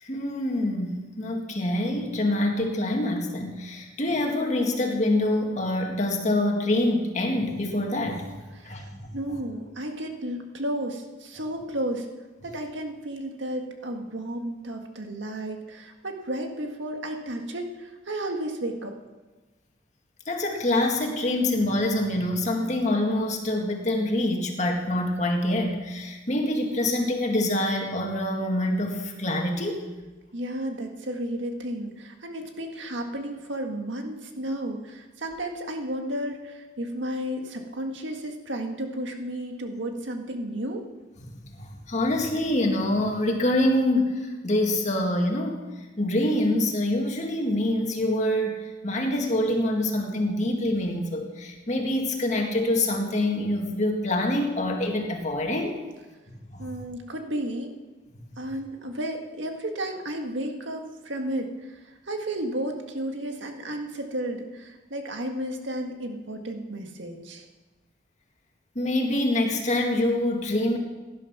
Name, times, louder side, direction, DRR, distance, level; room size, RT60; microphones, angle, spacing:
voice 1, 0.0-8.3 8.6-9.0 20.3-29.8 41.6-45.6 46.0-48.6 48.8-55.8 56.5-56.7 63.3-63.4 68.8-70.8, left 1 dB, 40° left, 1 dB, 2.0 m, -25 dB
voice 2, 9.1-12.1 12.4-19.0 30.3-40.8 56.6-57.7 58.4-67.5, right 1 dB, 85° right, 4 dB, 1.8 m, -33 dB
17.0 x 11.0 x 6.0 m, 1.2 s
head